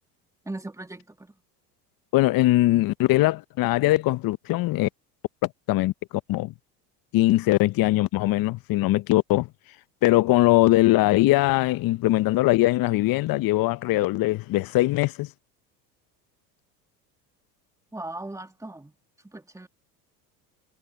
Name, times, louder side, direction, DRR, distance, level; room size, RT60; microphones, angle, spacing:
voice 1, 0.5-1.3 17.9-18.9 19.2-19.7, right 2 dB, 5° right, 2.0 m, -38 dB
voice 2, 2.1-4.9 5.7-5.9 6.3-6.5 7.1-9.5 10.0-15.3, left 17 dB, 45° left, 0.8 m, -21 dB
hypercardioid pair, 75°, 49 cm